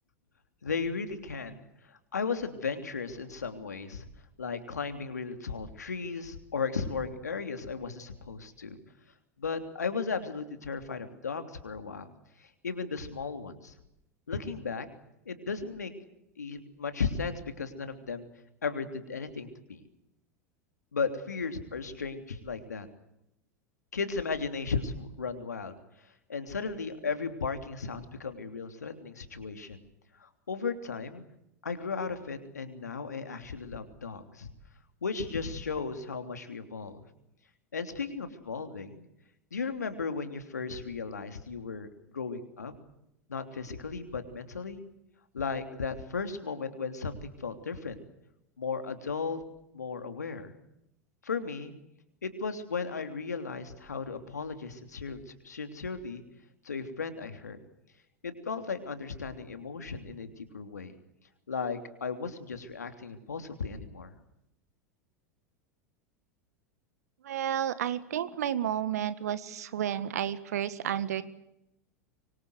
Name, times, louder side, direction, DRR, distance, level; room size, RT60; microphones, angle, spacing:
voice 1, 0.6-4.1 4.4-8.8 9.4-12.1 12.4-13.7 14.3-14.9 15.2-15.9 16.4-18.2 18.6-19.8 20.9-22.9 23.9-25.7 26.3-29.8 30.2-31.2 31.6-34.5 35.0-37.0 37.7-39.1 39.5-41.9 42.1-42.7 43.3-44.8 45.3-48.0 48.6-49.4 49.7-50.5 51.2-51.7 52.2-56.2 56.6-57.6 58.2-60.9 61.5-64.1, left 5 dB, 80° left, 8 dB, 3.2 m, -35 dB
voice 2, 67.2-71.2, right 10 dB, 70° right, 15 dB, 1.7 m, -31 dB
25.5 x 24.5 x 8.1 m, 0.83 s
figure-of-eight pair, 85°, 9 cm